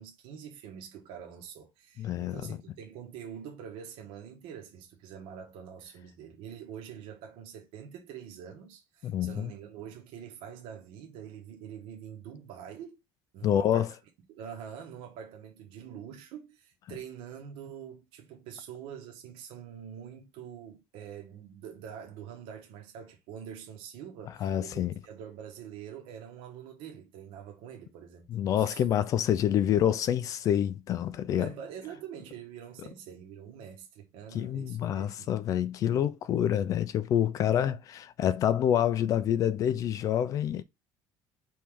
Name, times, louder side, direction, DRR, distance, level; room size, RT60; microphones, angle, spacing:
voice 1, 0.0-13.0 13.3-13.9 14.3-28.3 28.6-28.8 31.3-35.4, right 8 dB, 70° right, 1.1 m, -45 dB
voice 2, 2.0-2.5 9.0-9.5 13.4-13.9 24.4-24.9 28.3-31.5 34.3-40.6, left 10 dB, 40° left, 0.3 m, -27 dB
4.5 x 3.1 x 3.5 m
cardioid pair, 165°, 9 cm